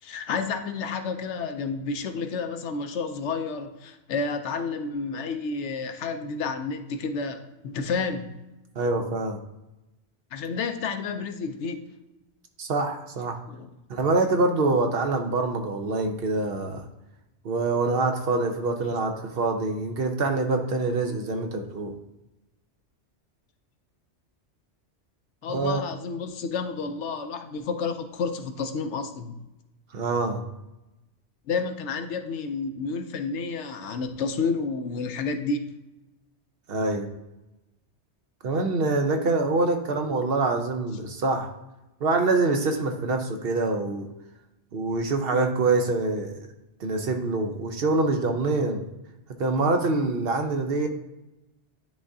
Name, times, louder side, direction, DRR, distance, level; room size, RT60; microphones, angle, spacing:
voice 1, 0.0-8.3 10.3-11.8 13.4-13.7 25.4-29.4 31.5-35.6, left 4 dB, 75° left, 7 dB, 0.9 m, -30 dB
voice 2, 8.8-9.4 12.6-13.4 13.9-16.9 17.4-21.9 25.5-25.8 29.9-30.4 36.7-37.1 38.4-41.5 42.0-44.1 44.7-46.4 46.8-48.8 49.4-50.9, right 3 dB, 60° right, 5 dB, 0.9 m, -25 dB
10.0 x 3.6 x 2.7 m, 0.96 s
omnidirectional pair, 1.2 m